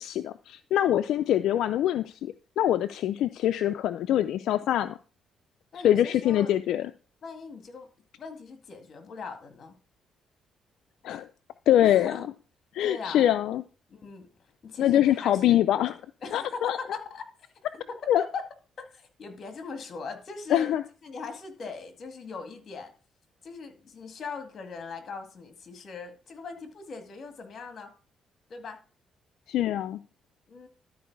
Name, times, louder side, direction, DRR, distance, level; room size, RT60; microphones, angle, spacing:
voice 1, 0.0-5.0 5.7-6.9 11.0-11.3 11.7-12.2 12.7-13.6 14.8-15.9 16.3-16.8 18.1-18.2 20.5-20.8 29.5-30.0, left 11 dB, 80° left, 11 dB, 0.4 m, -24 dB
voice 2, 5.7-6.5 7.2-7.9 8.2-9.8 11.8-12.2 12.8-13.3 13.9-14.3 14.6-15.6 16.2-17.5 17.9-18.4 18.8-20.7 21.0-22.9 23.4-27.9 28.5-28.8 30.5-30.7, left 4 dB, 50° left, 7 dB, 1.9 m, -40 dB
12.0 x 4.6 x 4.7 m, 0.37 s
cardioid pair, 90°, 0 cm